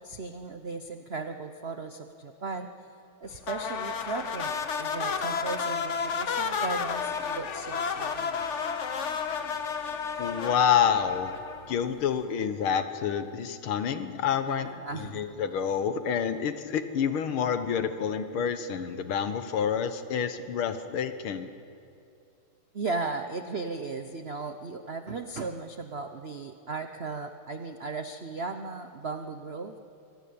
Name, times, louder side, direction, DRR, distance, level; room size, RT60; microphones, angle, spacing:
voice 1, 0.0-2.7 3.2-8.4 14.5-15.2 22.7-29.8, right 3 dB, 60° right, 7 dB, 0.6 m, -36 dB
sound 1, 3.4-11.9, left 6 dB, 45° left, 1.0 m, -32 dB
voice 2, 10.2-11.3 11.7-21.5, left 8 dB, 75° left, 10 dB, 1.9 m, -28 dB
24.5 x 18.0 x 8.7 m, 2.6 s
omnidirectional pair, 2.4 m